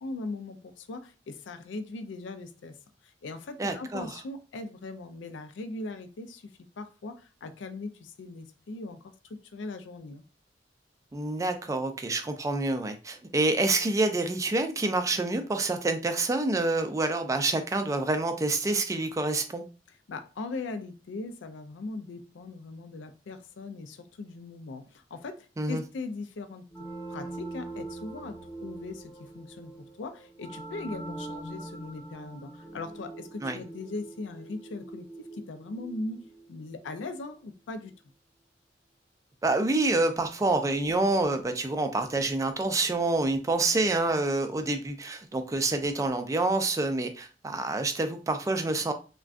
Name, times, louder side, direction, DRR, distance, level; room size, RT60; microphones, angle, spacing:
voice 1, 0.0-2.8 3.0-6.5 6.8-10.2 19.9-26.7 27.1-36.2 36.5-37.9, left 3 dB, 80° left, 0.4 m, -39 dB
voice 2, 3.6-4.1 11.1-19.6 25.6-25.8 33.4-33.6 39.4-48.9, right 2 dB, 15° right, 0.3 m, -27 dB
sound 1, 26.7-37.2, right 2 dB, 15° left, 0.8 m, -43 dB
3.5 x 2.2 x 2.4 m
head